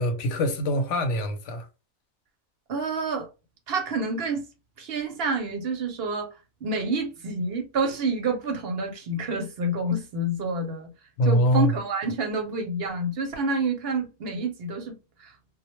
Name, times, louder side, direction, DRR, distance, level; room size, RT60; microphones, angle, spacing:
voice 1, 0.0-1.6 11.2-11.7, equal, 85° left, 1.0 m, -23 dB
voice 2, 2.7-3.3 3.7-4.5 4.8-6.3 6.6-10.9 11.2-15.3, right 2 dB, 60° right, 0.8 m, -28 dB
2.2 x 2.1 x 2.9 m
omnidirectional pair, 1.2 m